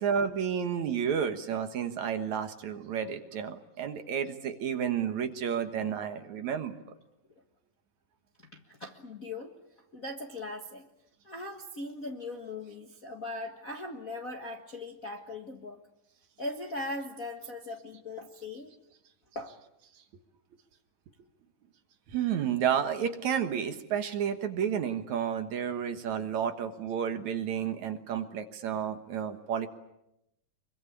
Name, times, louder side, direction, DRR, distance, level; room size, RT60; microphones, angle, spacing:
voice 1, 0.0-6.9 22.1-29.7, right 8 dB, 60° right, 7 dB, 2.5 m, -31 dB
voice 2, 8.5-9.5 9.9-10.8 11.2-15.8 16.4-18.7 19.3-19.5, left 2 dB, 40° left, 2 dB, 1.3 m, -39 dB
25.0 x 23.5 x 8.6 m, 0.85 s
omnidirectional pair, 3.9 m